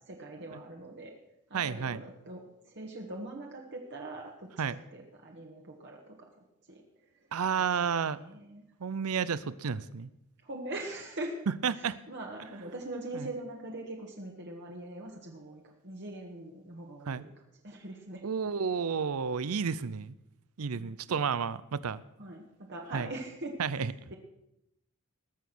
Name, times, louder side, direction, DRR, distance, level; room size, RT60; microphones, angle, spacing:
voice 1, 0.1-1.1 1.5-6.3 6.7-6.8 7.6-7.7 8.1-8.6 10.4-11.4 11.7-17.3 17.6-18.2 20.7-21.0 22.2-24.2, right 2 dB, 50° right, 0 dB, 1.6 m, -42 dB
voice 2, 1.5-2.0 4.6-4.8 7.3-8.2 8.8-10.1 11.5-12.0 13.1-13.3 17.1-17.2 18.2-20.1 20.6-22.0 22.9-23.1 23.6-23.9, right 6 dB, 70° right, 18 dB, 0.6 m, -31 dB
19.5 x 7.3 x 6.1 m, 0.84 s
head